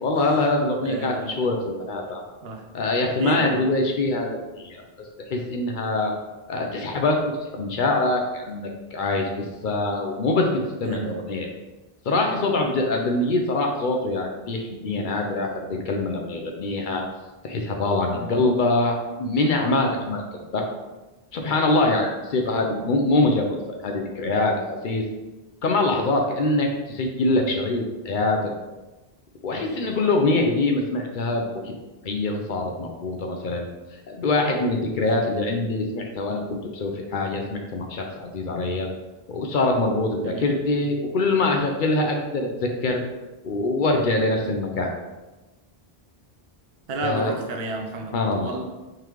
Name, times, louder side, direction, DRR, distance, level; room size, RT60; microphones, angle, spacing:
voice 1, 0.0-2.2 2.7-4.8 5.3-6.1 6.5-11.5 12.0-17.1 17.4-20.7 21.3-23.6 23.8-25.0 25.6-28.4 29.4-31.7 32.0-33.7 34.1-38.9 39.3-43.0 43.4-44.9 47.0-47.3 48.1-48.6, left 2 dB, 60° left, 2 dB, 0.6 m, -24 dB
voice 2, 0.8-1.3 2.4-2.6 3.2-3.7 10.8-11.4 18.1-18.4 22.4-22.7 29.7-30.1 40.2-40.5 46.9-48.6, right 2 dB, 75° right, 3 dB, 0.8 m, -33 dB
3.7 x 3.3 x 3.0 m, 1.1 s
omnidirectional pair, 1.0 m